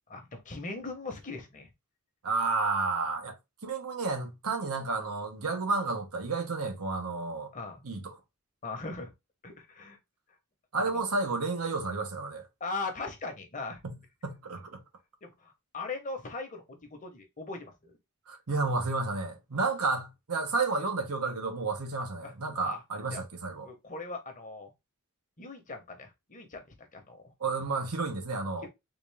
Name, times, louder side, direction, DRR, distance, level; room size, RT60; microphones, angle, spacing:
voice 1, 0.1-1.7 7.5-7.8 8.6-9.1 9.4-10.0 10.8-10.9 12.6-13.8 15.2-18.0 22.2-22.3 22.6-22.8 23.1-23.2 23.6-24.7 25.4-27.3 28.6-28.7, left 3 dB, 35° left, 1.0 m, -40 dB
voice 2, 2.2-3.4 3.6-7.5 7.8-8.2 10.7-12.5 13.8-13.9 14.2-14.8 18.3-23.7 27.4-28.7, right 3 dB, 80° right, 1.0 m, -31 dB
3.7 x 2.5 x 3.4 m
head